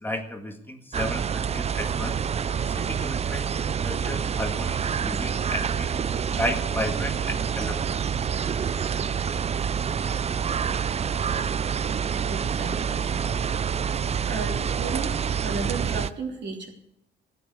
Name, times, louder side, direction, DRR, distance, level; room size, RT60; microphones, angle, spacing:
voice 1, 0.0-2.2 2.6-5.9 6.3-7.9, left 1 dB, 10° left, 4 dB, 1.8 m, -33 dB
sound 1, 0.9-16.1, right 7 dB, 30° right, 0.5 m, -27 dB
voice 2, 12.3-13.2 14.2-15.1 15.4-16.7, right 4 dB, 60° right, 1 dB, 3.5 m, -34 dB
14.0 x 9.2 x 8.1 m, 0.77 s
cardioid pair, 90°, 20 cm